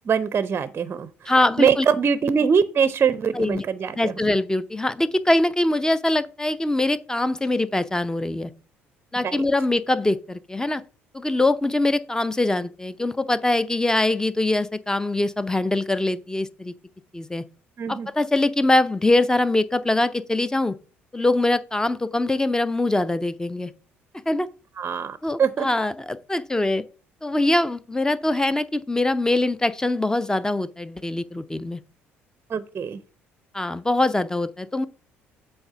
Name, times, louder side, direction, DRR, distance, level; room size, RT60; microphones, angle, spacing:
voice 1, 0.1-4.1 9.2-9.4 17.8-18.1 24.8-25.7 32.5-33.0, right 6 dB, 35° right, 0.5 m, -23 dB
voice 2, 1.3-1.9 3.3-3.6 3.9-8.5 9.1-10.8 11.1-16.7 17.1-17.4 17.9-20.7 21.1-23.7 24.3-24.5 25.2-26.8 27.2-31.8 33.5-34.9, left 2 dB, 10° left, 0.5 m, -23 dB
8.0 x 3.4 x 5.6 m
hypercardioid pair, 55°, 6 cm